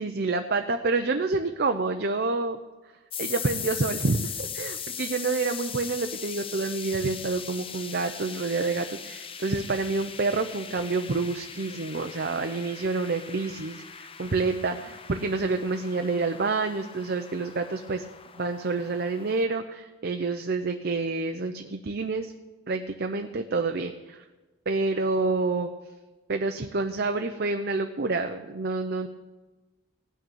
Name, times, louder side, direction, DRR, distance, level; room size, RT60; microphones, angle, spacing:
voice 1, 0.0-2.6 3.2-18.0 18.4-22.3 22.7-24.2 24.7-25.7 26.3-29.1, right 3 dB, 50° right, 6 dB, 0.7 m, -28 dB
sound 1, 3.1-19.5, left 7 dB, 25° left, 0.7 m, -40 dB
17.5 x 6.4 x 8.9 m, 1.2 s
head